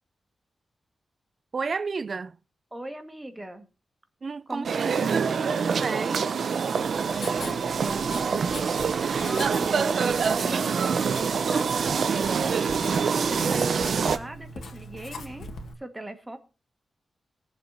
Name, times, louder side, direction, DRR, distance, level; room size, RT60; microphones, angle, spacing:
voice 1, 1.5-2.4 4.2-5.3 5.7-6.3 11.6-11.7, right 4 dB, 45° right, 0.5 m, -32 dB
voice 2, 2.7-3.7 4.5-5.2 7.2-8.3 9.2-10.0 10.4-10.7 11.5-12.8 13.3-15.5 15.8-16.4, right 1 dB, 15° right, 1.9 m, -39 dB
sound 1, 4.6-14.2, right 6 dB, 70° right, 0.8 m, -25 dB
Writing, 6.8-15.7, left 1 dB, 80° left, 2.1 m, -41 dB
21.5 x 7.5 x 2.9 m
wide cardioid pair, 115°, 0 cm